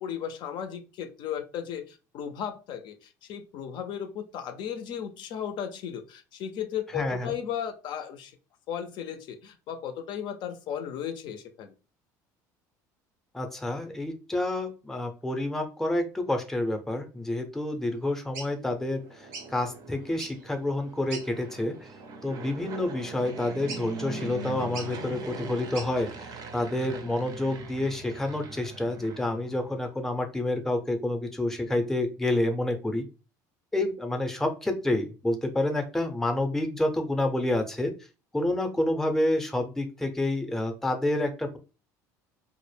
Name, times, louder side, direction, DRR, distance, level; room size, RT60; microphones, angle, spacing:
voice 1, 0.0-8.4 8.7-11.7, left 9 dB, 60° left, 7 dB, 0.4 m, -35 dB
voice 2, 6.9-7.3 13.3-21.9 22.2-33.0 33.7-37.9 38.3-41.6, left 1 dB, 5° left, 6 dB, 0.5 m, -29 dB
sound 1, 18.3-18.5 19.3-19.5 20.1-20.5 21.1-21.3 21.8-22.0 23.7-24.1 24.7-24.9 25.7-25.9, right 4 dB, 90° right, 0.7 m, -40 dB
Fixed-wing aircraft airplane, 18.8-29.9, right 3 dB, 45° right, 0.5 m, -41 dB
2.0 x 2.0 x 3.2 m, 0.32 s
supercardioid pair, 90°, 9 cm